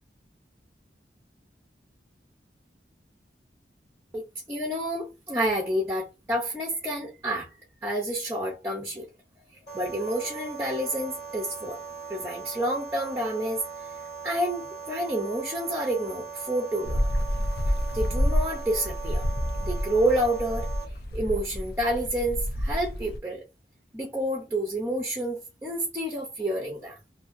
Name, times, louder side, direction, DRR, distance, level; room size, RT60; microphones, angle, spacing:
voice 1, 4.1-7.5 7.8-9.1 9.7-11.8 12.1-13.6 14.2-17.1 17.9-19.2 19.6-20.7 21.1-23.4 23.9-27.0, right 1 dB, 15° right, 0.6 m, -29 dB
sound 1, 9.7-20.8, right 5 dB, 35° left, 1.0 m, -40 dB
sound 2, 16.8-23.2, equal, 60° left, 0.5 m, -29 dB
2.7 x 2.7 x 2.5 m
head